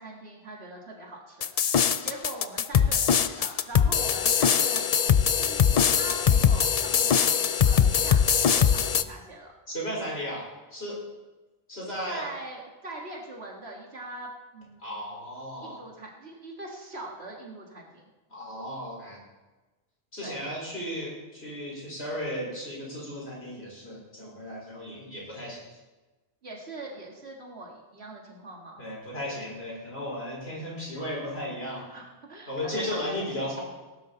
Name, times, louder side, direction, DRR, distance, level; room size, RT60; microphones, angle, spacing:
voice 1, 0.0-4.9 5.4-9.5 12.1-15.1 15.6-18.1 20.2-20.4 26.4-28.8 31.9-33.2, right 2 dB, 70° right, 0 dB, 2.2 m, -42 dB
sound 1, 1.4-9.0, left 8 dB, 50° left, 0.5 m, -22 dB
voice 2, 9.7-11.0 11.7-12.2 14.8-15.8 18.3-19.2 20.1-25.6 28.8-31.9 32.5-33.6, equal, 70° left, -4 dB, 4.9 m, -35 dB
18.0 x 11.5 x 4.1 m, 1.2 s
omnidirectional pair, 1.1 m